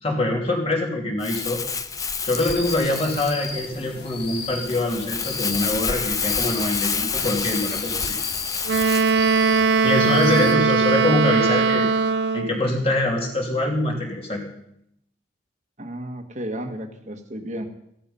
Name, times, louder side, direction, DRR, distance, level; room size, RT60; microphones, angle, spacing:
voice 1, 0.0-1.6 2.3-8.2 9.8-11.9 12.3-14.4, left 1 dB, 35° left, 0 dB, 3.0 m, -24 dB
Crumpling crinkling, 1.2-9.1, left 5 dB, 20° left, 0.6 m, -28 dB
sound 1, 2.2-10.6, left 4 dB, 60° left, 1.7 m, -36 dB
Wind instrument woodwind instrument, 8.7-12.6, right 4 dB, 70° right, 0.7 m, -20 dB
voice 2, 10.2-11.4 15.8-17.7, right 1 dB, 40° right, 5 dB, 1.4 m, -33 dB
14.5 x 12.5 x 5.6 m, 0.75 s
head